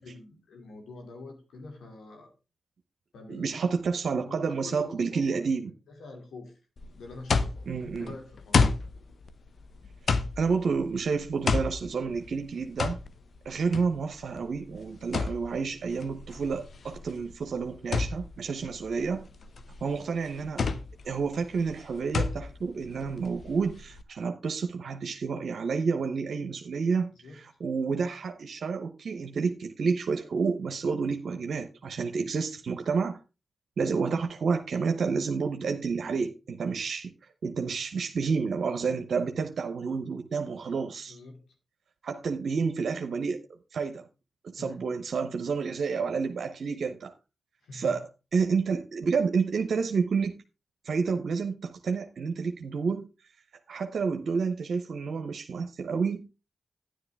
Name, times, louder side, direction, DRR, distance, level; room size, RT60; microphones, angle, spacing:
voice 1, 0.0-2.3 3.1-3.6 4.2-5.4 6.0-6.6 6.9-8.7 27.2-27.4 41.1-41.5 44.6-44.8 47.6-48.0, left 3 dB, 85° left, 2.4 m, -45 dB
voice 2, 3.3-5.7 7.7-8.1 10.4-13.0 13.4-19.3 19.8-20.6 21.0-33.2 33.8-37.1 37.4-41.2 42.0-43.4 43.7-44.1 44.4-47.1 47.7-48.0 48.3-50.3 50.8-53.1 53.7-56.2, right 5 dB, 75° right, 0.8 m, -29 dB
sound 1, 6.8-24.0, left 4 dB, 65° left, 0.8 m, -31 dB
10.5 x 9.6 x 3.4 m
cardioid pair, 45°, 0 cm